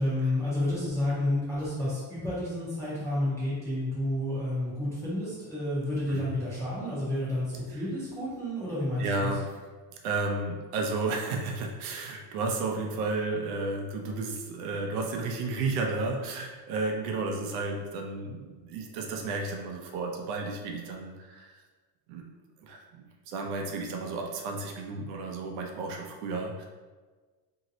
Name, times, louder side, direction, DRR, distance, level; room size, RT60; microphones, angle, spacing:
voice 1, 0.0-9.3, left 1 dB, 5° left, -11 dB, 0.5 m, -30 dB
voice 2, 9.0-9.5 10.0-21.6 22.1-22.2 22.6-26.7, right 3 dB, 65° right, 1 dB, 0.6 m, -32 dB
3.0 x 2.7 x 2.7 m, 1.3 s
cardioid pair, 175°, 49 cm